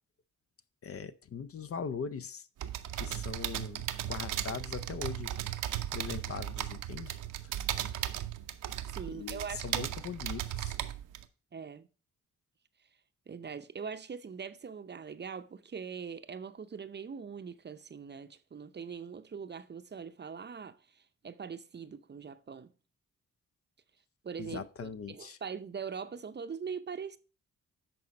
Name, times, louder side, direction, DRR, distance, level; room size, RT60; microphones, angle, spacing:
voice 1, 0.8-2.5 3.0-5.4 5.9-7.2 9.1-10.8 24.4-25.4, left 6 dB, 50° left, 0.6 m, -40 dB
sound 1, 2.6-11.2, right 12 dB, 85° right, 0.7 m, -36 dB
voice 2, 8.8-9.9 11.5-11.9 13.3-22.7 24.2-27.2, right 6 dB, 35° right, 0.6 m, -42 dB
11.0 x 4.2 x 5.1 m
cardioid pair, 65°, 30 cm